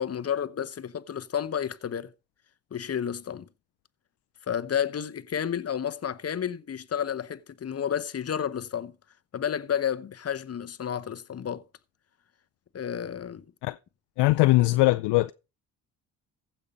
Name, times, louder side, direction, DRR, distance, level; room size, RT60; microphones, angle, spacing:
voice 1, 0.0-2.1 2.7-3.5 4.5-8.9 9.3-11.6 12.7-13.4, left 8 dB, 35° left, 0.8 m, -31 dB
voice 2, 14.2-15.3, left 19 dB, 75° left, 0.5 m, -21 dB
15.0 x 5.6 x 5.1 m
supercardioid pair, 65°, 41 cm